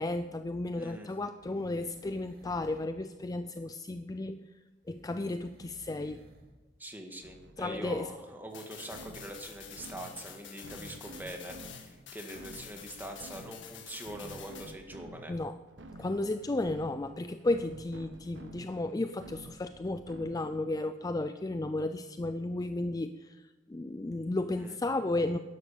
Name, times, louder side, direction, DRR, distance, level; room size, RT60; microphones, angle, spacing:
voice 1, 0.0-4.4 4.9-6.2 7.6-8.1 15.3-15.6 16.0-25.4, left 2 dB, 20° left, 10 dB, 0.4 m, -33 dB
voice 2, 0.8-1.1 6.8-15.3 24.6-24.8, right 1 dB, 10° right, 3 dB, 1.8 m, -43 dB
sound 1, 1.0-3.0 4.8-6.5 6.8-6.9, equal, 55° right, 2.8 m, -57 dB
sound 2, 7.2-20.7, right 1 dB, 80° right, 1.3 m, -51 dB
sound 3, 8.5-14.7, left 8 dB, 80° left, 1.7 m, -49 dB
12.5 x 11.0 x 6.7 m, 1.2 s
head